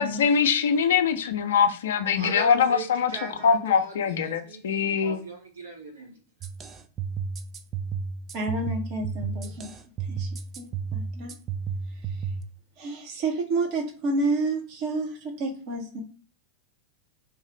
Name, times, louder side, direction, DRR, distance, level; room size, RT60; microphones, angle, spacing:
voice 1, 0.0-3.1 3.4-5.2, left 6 dB, 60° left, 8 dB, 0.4 m, -23 dB
voice 2, 2.1-6.1, right 3 dB, 65° right, 1 dB, 0.8 m, -39 dB
sound 1, 6.4-12.4, right 5 dB, 25° right, 0.3 m, -33 dB
voice 3, 8.3-9.7 10.1-10.3 10.6-11.4 12.8-16.0, right 2 dB, 40° right, 3 dB, 0.9 m, -29 dB
2.8 x 2.4 x 3.1 m, 0.41 s
figure-of-eight pair, 90°, 0 cm